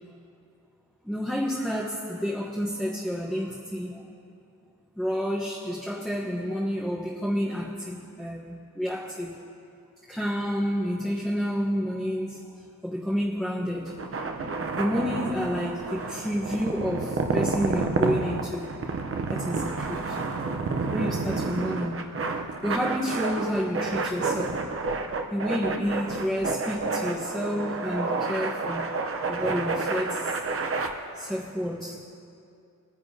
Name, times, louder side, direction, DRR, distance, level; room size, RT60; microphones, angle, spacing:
voice 1, 1.0-4.0 5.0-9.4 10.1-12.4 12.8-13.9 14.8-18.7 19.3-20.2 20.9-22.1 22.6-24.6 25.3-28.9 29.3-30.4 31.1-32.0, equal, ahead, -5 dB, 1.0 m, -29 dB
sound 1, 13.9-30.9, right 4 dB, 40° right, 0.8 m, -30 dB
20.5 x 9.9 x 2.8 m, 2.5 s
wide cardioid pair, 110°, 34 cm